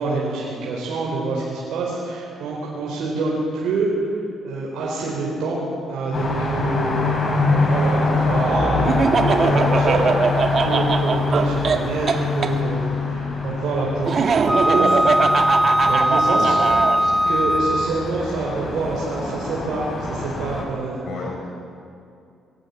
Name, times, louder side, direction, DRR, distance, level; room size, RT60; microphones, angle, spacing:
voice 1, 0.0-4.1 4.4-5.6 5.9-10.1 10.6-15.0 15.8-16.5 17.3-21.0, right 3 dB, 80° right, -4 dB, 4.5 m, -26 dB
sound 1, 6.1-20.6, left 3 dB, 45° left, 5.1 m, -24 dB
Laughter, 8.9-12.5 14.1-17.0, right 5 dB, 50° right, 1.6 m, -21 dB
Wind instrument woodwind instrument, 14.5-18.1, equal, ahead, 0.5 m, -19 dB
voice 2, 15.8-17.1 21.0-21.5, left 3 dB, 65° left, 0 dB, 5.1 m, -34 dB
22.5 x 16.5 x 8.5 m, 2.5 s
cardioid pair, 90°, 0 cm